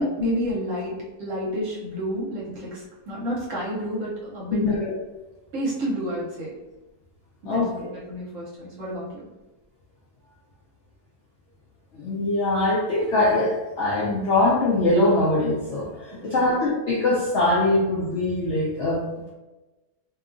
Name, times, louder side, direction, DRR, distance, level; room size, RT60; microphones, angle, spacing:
voice 1, 0.0-4.6 5.5-6.5 7.4-9.2 16.2-16.5, equal, 60° right, -5 dB, 1.0 m, -30 dB
voice 2, 4.5-4.9 7.5-7.7 11.9-19.0, left 2 dB, 70° left, -5 dB, 0.6 m, -22 dB
2.7 x 2.3 x 2.4 m, 1.1 s
omnidirectional pair, 1.7 m